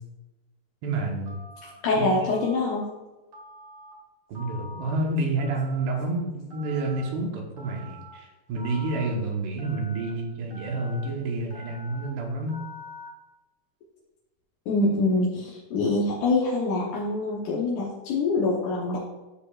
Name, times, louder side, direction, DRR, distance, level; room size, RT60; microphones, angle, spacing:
voice 1, 0.8-1.4 1.9-2.1 4.3-12.6, right 2 dB, 75° right, 0 dB, 3.3 m, -29 dB
Telephone, 1.3-1.7 2.3-2.8 3.3-3.9 4.3-4.9 5.4-5.9 6.5-7.1 7.6-8.1 8.6-9.1 9.6-10.1 10.5-11.1 11.5-12.1 12.5-13.1, left 1 dB, 50° right, 1.1 m, -45 dB
voice 2, 1.8-2.8 14.7-19.0, left 2 dB, 65° left, -5 dB, 2.0 m, -25 dB
14.0 x 5.2 x 2.4 m, 1.1 s
omnidirectional pair, 4.8 m